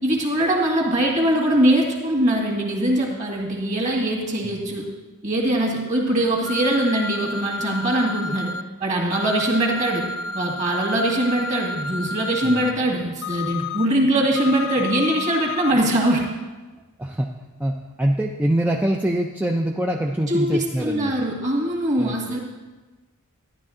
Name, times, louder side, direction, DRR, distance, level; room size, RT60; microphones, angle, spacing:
voice 1, 0.0-4.9 5.2-8.5 8.8-10.1 10.3-16.3 20.3-22.4, right 1 dB, 35° right, 0 dB, 1.9 m, -22 dB
sound 1, 6.5-8.6 9.1-12.7 13.2-13.9 14.4-15.7, left 3 dB, 70° left, 0.6 m, -31 dB
voice 2, 17.6-21.1 22.0-22.4, right 1 dB, 5° right, 1 dB, 0.4 m, -24 dB
12.0 x 10.5 x 3.8 m, 1.2 s
head